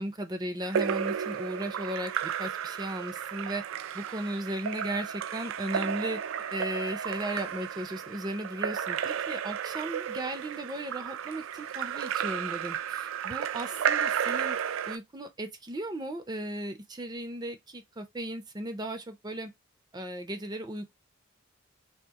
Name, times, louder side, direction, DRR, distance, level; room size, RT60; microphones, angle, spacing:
voice 1, 0.0-3.6 3.9-6.2 6.5-14.6 14.9-19.5 19.9-20.9, right 1 dB, 20° right, 0.5 m, -36 dB
Splash splatter / Drip / Trickle dribble, 0.6-15.0, right 8 dB, 80° right, 0.3 m, -33 dB
2.8 x 2.5 x 3.5 m
head